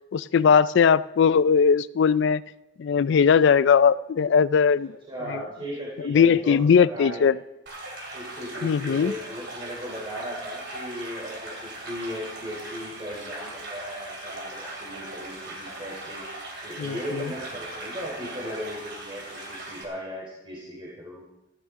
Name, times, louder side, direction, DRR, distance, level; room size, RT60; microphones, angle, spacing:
voice 1, 0.1-2.4 2.8-4.9 5.3-5.4 6.0-7.4 8.6-9.1 16.8-17.3, left 6 dB, 65° left, 18 dB, 0.4 m, -19 dB
voice 2, 5.1-7.2 8.1-16.2 16.6-21.2, equal, 30° right, -5 dB, 3.3 m, -37 dB
sound 1, 7.7-19.8, right 2 dB, 60° right, 2.9 m, -39 dB
16.5 x 14.5 x 3.7 m, 1.0 s
head